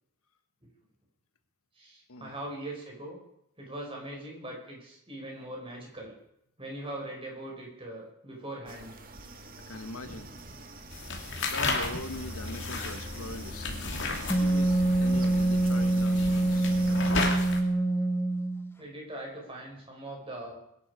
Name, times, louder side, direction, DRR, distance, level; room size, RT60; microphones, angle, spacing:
voice 1, 1.8-3.2 3.6-6.1 6.6-9.0 18.8-20.6, right 1 dB, 25° right, -1 dB, 5.2 m, -41 dB
sound 1, 8.7-17.1, right 1 dB, 40° right, 1.9 m, -44 dB
voice 2, 9.7-10.3 11.3-16.7, left 2 dB, 75° left, 9 dB, 1.3 m, -42 dB
sound 2, 10.9-17.6, left 3 dB, 55° left, 2.6 m, -34 dB
Wind instrument woodwind instrument, 14.3-18.7, right 2 dB, 10° left, 0.9 m, -25 dB
22.5 x 11.5 x 5.0 m, 0.76 s
head